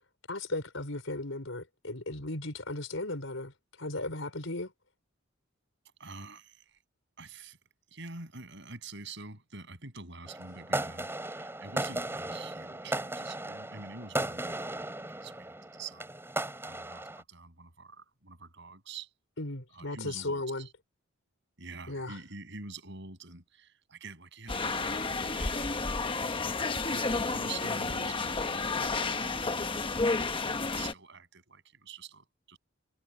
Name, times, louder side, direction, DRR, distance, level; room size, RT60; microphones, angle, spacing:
voice 1, 0.3-3.5 3.8-4.7 19.4-20.7 21.9-22.2, left 2 dB, 75° left, 5.1 m, -36 dB
voice 2, 6.0-6.8 7.2-7.6 7.9-16.1 16.6-19.1 19.7-20.7 21.6-25.8 26.9-32.6, right 4 dB, 65° right, 7.8 m, -47 dB
sound 1, 10.3-17.2, right 1 dB, 10° right, 5.2 m, -36 dB
sound 2, 24.5-30.9, left 3 dB, 25° left, 1.1 m, -31 dB
head